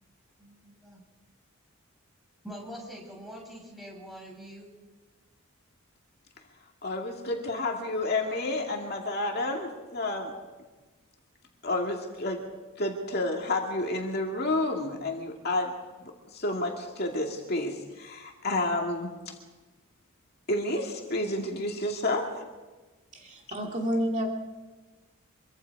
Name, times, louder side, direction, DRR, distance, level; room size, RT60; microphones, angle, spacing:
voice 1, 0.4-1.0 2.4-4.7, equal, ahead, -2 dB, 6.4 m, -44 dB
voice 2, 6.8-10.3 11.6-12.4 12.8-15.7 16.0-19.3 20.5-22.4, left 2 dB, 45° left, 1 dB, 2.4 m, -30 dB
voice 3, 23.1-24.3, equal, 35° right, 0 dB, 2.5 m, -29 dB
26.5 x 23.5 x 4.9 m, 1.2 s
head